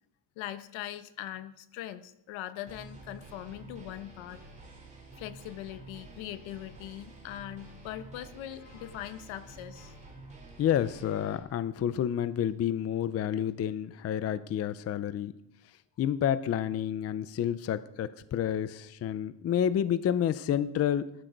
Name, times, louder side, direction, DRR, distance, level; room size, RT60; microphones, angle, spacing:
voice 1, 0.4-4.4 5.2-10.0, left 12 dB, 80° left, 12 dB, 1.2 m, -41 dB
sound 1, 2.7-11.4, right 2 dB, 15° right, 3.6 m, -50 dB
voice 2, 10.6-15.3 16.0-21.1, left 9 dB, 35° left, 14 dB, 0.5 m, -29 dB
18.0 x 12.0 x 5.1 m, 0.83 s
cardioid pair, 160°, 46 cm